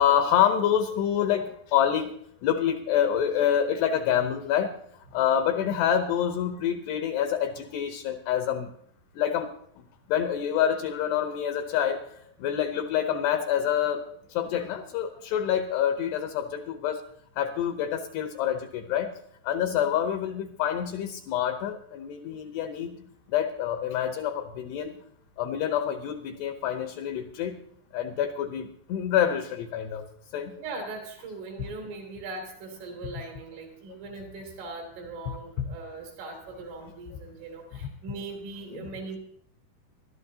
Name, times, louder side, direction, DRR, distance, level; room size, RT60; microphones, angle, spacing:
voice 1, 0.0-2.1 2.4-4.7 5.1-8.7 9.2-9.5 10.1-12.0 12.4-14.0 14.3-17.0 17.4-19.1 19.4-23.0 23.3-24.9 25.4-27.6 27.9-30.1 30.3-30.5 38.7-38.9, left 9 dB, 75° left, 6 dB, 2.6 m, -27 dB
voice 2, 30.6-39.2, right 3 dB, 80° right, 1 dB, 5.5 m, -40 dB
24.5 x 12.0 x 2.8 m, 0.67 s
omnidirectional pair, 5.6 m